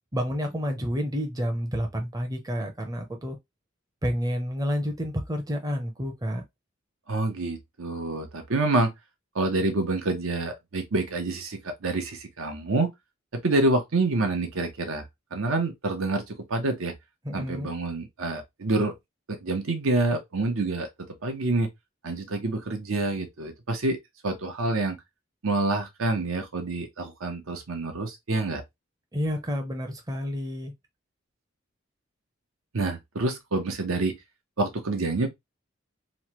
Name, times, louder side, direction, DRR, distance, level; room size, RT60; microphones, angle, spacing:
voice 1, 0.1-3.4 4.0-6.4 17.2-17.7 29.1-30.7, equal, 20° right, 0.5 m, -29 dB
voice 2, 7.1-8.9 9.3-12.9 13.3-16.9 17.3-18.9 19.3-20.9 21.2-21.7 22.0-24.0 24.2-25.0 25.4-28.6 32.7-34.2 34.6-35.3, right 2 dB, 90° right, 0.8 m, -27 dB
3.0 x 2.2 x 2.9 m
head